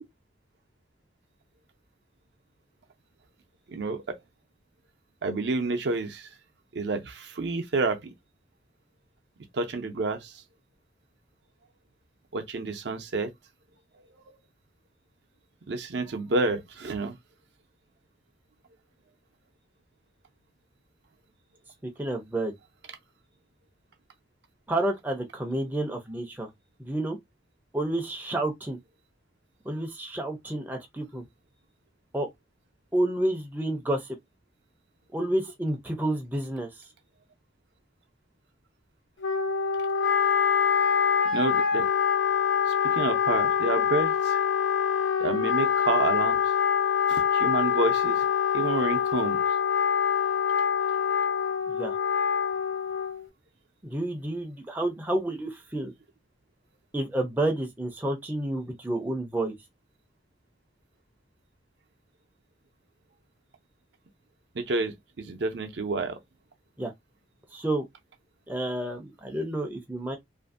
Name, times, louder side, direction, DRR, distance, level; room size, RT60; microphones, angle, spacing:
voice 1, 3.7-4.2 5.2-6.3 6.7-8.1 9.5-10.3 12.3-13.3 15.7-17.1 41.3-41.9 42.8-44.4 45.2-46.4 47.1-48.3 48.5-49.4 64.5-66.2, right 3 dB, 70° right, 0.6 m, -29 dB
voice 2, 21.8-22.5 24.7-26.5 26.8-27.2 27.7-28.8 29.6-31.3 32.1-32.3 32.9-34.2 35.1-36.9 51.7-52.0 53.8-55.9 56.9-59.5 66.8-66.9 67.5-67.8 68.5-70.2, right 1 dB, 10° right, 0.4 m, -30 dB
Wind instrument woodwind instrument, 39.2-53.3, left 7 dB, 85° left, 0.7 m, -25 dB
2.6 x 2.5 x 2.4 m
head